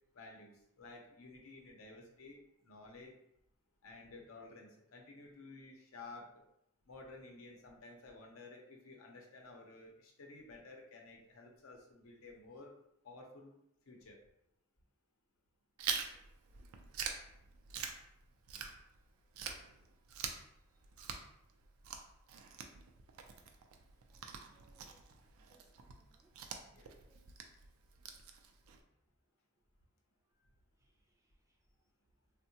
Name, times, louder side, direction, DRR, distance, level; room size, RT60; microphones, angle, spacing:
voice 1, 0.1-3.2 3.8-6.3 6.9-12.7 13.0-13.6 13.9-14.2 26.7-26.9, left 3 dB, 80° left, 1 dB, 0.6 m, -54 dB
Chewing mastication, 15.8-19.0 19.3-28.8, right 6 dB, 85° right, 0.4 m, -45 dB
voice 2, 16.1-16.7 24.1-24.2 24.5-25.1 25.5-26.3 26.8-27.2 30.8-30.9, right 2 dB, 15° right, -1 dB, 0.4 m, -72 dB
3.5 x 2.1 x 2.7 m, 0.78 s
head